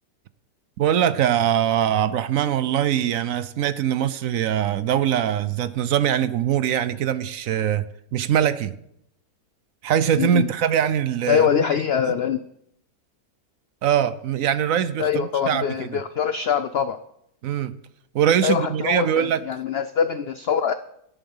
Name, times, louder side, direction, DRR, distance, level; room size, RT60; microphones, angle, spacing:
voice 1, 0.8-7.8 8.1-8.7 9.8-11.7 13.8-16.0 17.4-17.7 18.1-19.4, right 9 dB, 65° right, 0.9 m, -22 dB
voice 2, 10.1-10.5 11.3-12.4 15.0-17.0 18.4-20.7, left 7 dB, 85° left, 0.5 m, -23 dB
11.0 x 10.5 x 5.5 m
omnidirectional pair, 1.7 m